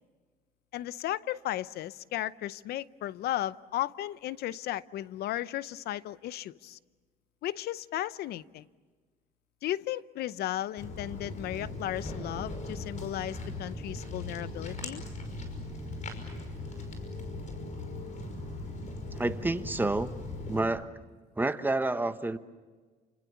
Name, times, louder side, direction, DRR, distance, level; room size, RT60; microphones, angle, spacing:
voice 1, 0.7-6.8 7.4-8.7 9.6-15.0, left 13 dB, 70° left, 17 dB, 0.7 m, -35 dB
Walk footsteps, 10.8-20.7, left 2 dB, 45° left, 5.6 m, -39 dB
voice 2, 19.2-20.1 20.5-20.9 21.4-22.4, right 2 dB, 10° right, 10 dB, 1.1 m, -29 dB
28.5 x 26.0 x 7.1 m, 1.4 s
cardioid pair, 110°, 17 cm